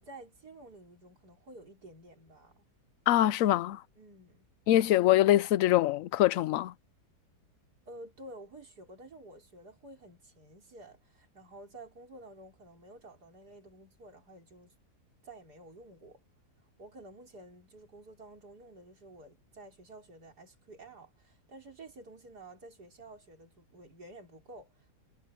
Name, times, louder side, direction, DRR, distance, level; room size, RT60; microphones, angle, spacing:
voice 1, 0.0-2.7 4.0-4.5 7.9-14.7 15.2-16.2 16.8-24.9, right 2 dB, 75° right, 4.9 m, -51 dB
voice 2, 3.1-3.8 4.7-6.7, left 13 dB, 70° left, 0.8 m, -24 dB
omnidirectional pair, 1.7 m